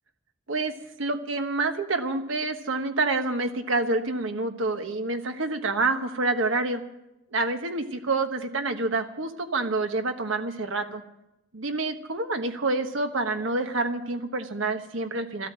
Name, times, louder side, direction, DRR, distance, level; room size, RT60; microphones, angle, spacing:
voice 1, 1.0-6.8 7.3-11.0 11.5-15.5, right 3 dB, 75° right, 6 dB, 1.3 m, -27 dB
13.5 x 12.5 x 7.5 m, 0.91 s
head